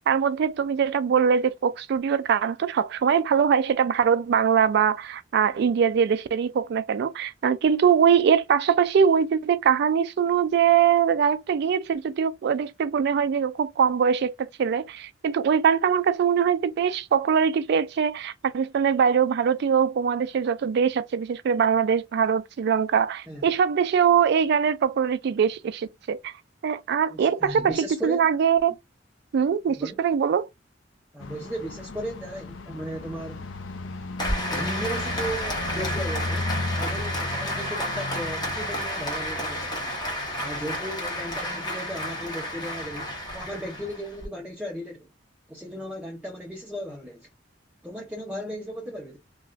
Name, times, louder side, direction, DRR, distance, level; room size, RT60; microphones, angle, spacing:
voice 1, 0.1-26.3 26.6-28.7 29.3-30.5, right 7 dB, 60° right, 0.3 m, -22 dB
voice 2, 27.1-28.3 29.8-30.0 31.1-33.4 34.3-36.5 36.8-39.8 40.4-45.1 45.5-47.3 47.8-49.2, equal, 5° right, 0.6 m, -36 dB
sound 1, 31.2-43.9, left 2 dB, 85° left, 0.5 m, -36 dB
Applause, 34.2-44.3, equal, 25° left, 0.9 m, -31 dB
2.4 x 2.3 x 3.0 m
head